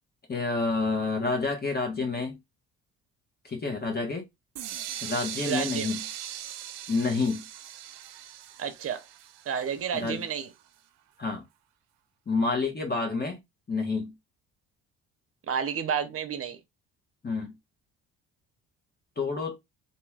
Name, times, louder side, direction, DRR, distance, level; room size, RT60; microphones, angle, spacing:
voice 1, 0.3-2.4 3.4-4.2 5.0-6.0 6.9-7.5 9.9-10.2 11.2-11.4 12.3-13.4 13.7-14.1 17.2-17.5 19.2-19.5, left 3 dB, 30° left, 1.2 m, -28 dB
sound 1, 4.6-10.4, right 11 dB, 85° right, 0.5 m, -40 dB
voice 2, 5.5-5.9 8.6-9.0 9.5-10.5 15.5-16.6, right 7 dB, 40° right, 0.8 m, -30 dB
3.0 x 2.7 x 2.3 m
hypercardioid pair, 55°, 34 cm